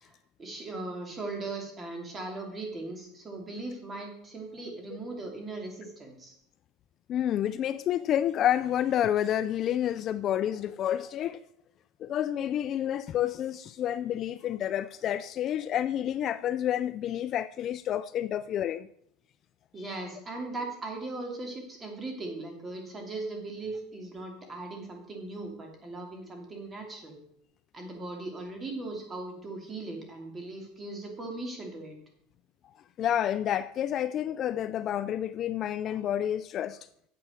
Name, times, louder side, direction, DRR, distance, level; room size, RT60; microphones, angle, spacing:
voice 1, 0.0-6.4 19.7-27.2 27.7-32.0, right 2 dB, 20° right, 2.6 m, -39 dB
voice 2, 7.1-11.4 12.0-18.9 33.0-36.8, left 11 dB, 35° left, 0.4 m, -29 dB
9.5 x 7.4 x 6.3 m
supercardioid pair, 150°, 0 cm